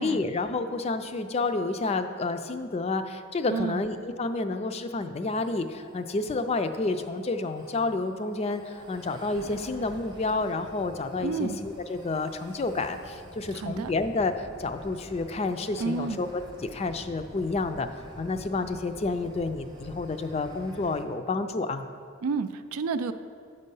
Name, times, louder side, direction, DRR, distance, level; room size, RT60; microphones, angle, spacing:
voice 1, 0.0-16.3 16.6-17.9 18.2-21.9, left 3 dB, 30° left, 9 dB, 0.3 m, -30 dB
voice 2, 3.5-3.8 11.2-11.6 13.5-13.9 15.8-16.2 22.2-23.1, right 4 dB, 85° right, 11 dB, 0.4 m, -30 dB
sound 1, 5.2-21.0, right 1 dB, 20° right, 0.6 m, -48 dB
8.0 x 5.4 x 5.4 m, 2.3 s
head